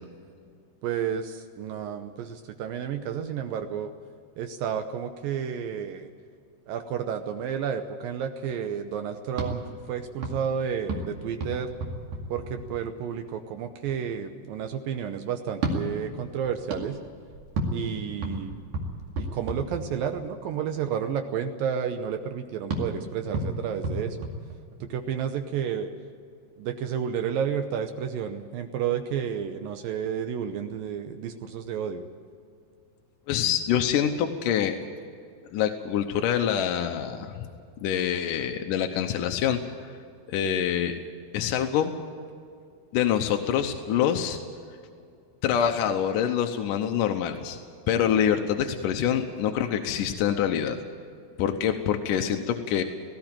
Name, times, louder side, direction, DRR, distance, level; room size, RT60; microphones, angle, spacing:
voice 1, 0.8-3.9 4.4-6.1 6.7-9.6 9.9-11.7 12.3-17.0 17.7-18.6 19.2-24.3 24.8-25.9 26.6-32.1, right 8 dB, 75° right, 7 dB, 2.3 m, -31 dB
sound 1, 9.3-13.1 15.5-20.4 22.7-25.1, right 2 dB, 55° right, 3.4 m, -34 dB
voice 2, 33.3-34.8 35.5-37.5 37.8-39.9 40.3-41.0 41.3-41.9 42.9-44.4 45.4-47.6 47.9-50.8 51.4-52.8, left 9 dB, 75° left, 5 dB, 2.1 m, -25 dB
18.0 x 16.0 x 9.0 m, 2.3 s
omnidirectional pair, 4.8 m